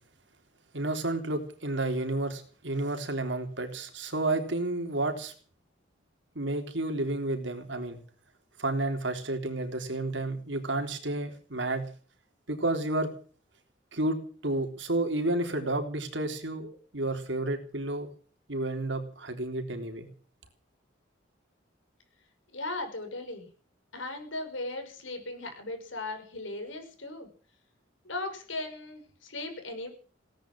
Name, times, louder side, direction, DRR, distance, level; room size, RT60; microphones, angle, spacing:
voice 1, 0.7-5.3 6.4-8.0 8.6-11.9 12.5-13.1 13.9-14.2 14.4-18.1 18.5-20.1, right 2 dB, 75° right, 6 dB, 3.6 m, -31 dB
voice 2, 22.5-23.5 23.9-27.3 28.0-29.9, left 2 dB, 90° left, 6 dB, 5.9 m, -37 dB
18.0 x 10.5 x 7.6 m, 0.42 s
head